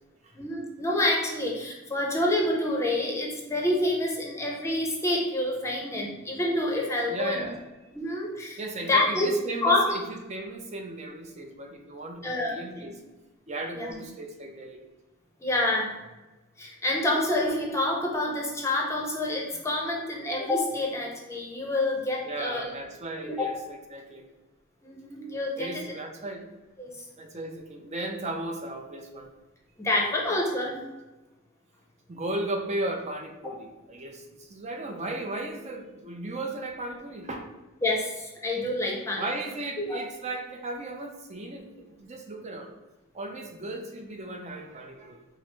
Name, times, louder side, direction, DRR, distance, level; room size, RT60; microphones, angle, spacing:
voice 1, 0.3-7.4 7.9-9.3 9.6-9.9 12.2-12.9 13.8-14.0 15.4-15.9 16.6-22.6 23.2-23.5 24.8-25.8 26.8-26.9 29.8-30.8 37.8-39.3 39.8-40.0, left 1 dB, 15° left, -1 dB, 0.7 m, -27 dB
voice 2, 7.1-7.6 8.6-12.9 13.5-14.8 22.3-23.6 23.9-24.3 25.6-26.5 27.2-29.3 32.1-37.5 39.2-42.7 43.1-45.2, right 2 dB, 35° right, 3 dB, 0.6 m, -36 dB
4.6 x 2.0 x 4.5 m, 1.1 s
head